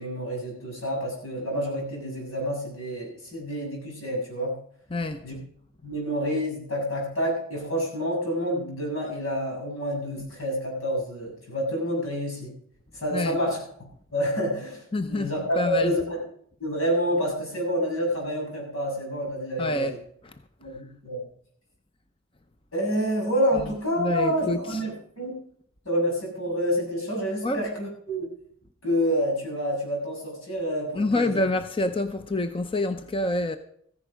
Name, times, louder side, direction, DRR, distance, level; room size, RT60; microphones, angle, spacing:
voice 1, 0.0-4.6 5.2-5.4 5.8-12.5 12.9-13.6 14.1-16.2 16.6-20.0 20.6-21.2 22.7-25.3 25.9-28.3 28.8-31.4, equal, 90° left, 7.1 m, -28 dB
voice 2, 4.9-5.3 13.1-13.4 14.9-15.9 19.6-19.9 20.2-20.4 23.6-24.8 27.4-27.6 30.9-33.6, left 2 dB, 25° left, 0.7 m, -27 dB
15.0 x 10.5 x 5.1 m
head